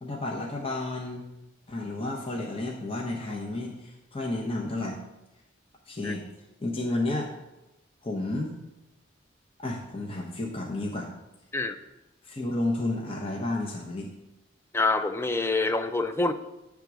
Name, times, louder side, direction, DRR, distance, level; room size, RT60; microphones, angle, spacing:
voice 1, 0.0-1.3 1.7-5.0 5.9-6.3 6.6-7.3 8.0-8.5 9.6-11.1 12.2-14.1, left 2 dB, 30° left, -1 dB, 0.7 m, -31 dB
voice 2, 14.7-16.3, left 3 dB, 15° left, 9 dB, 0.3 m, -26 dB
8.1 x 3.6 x 6.0 m, 0.97 s
head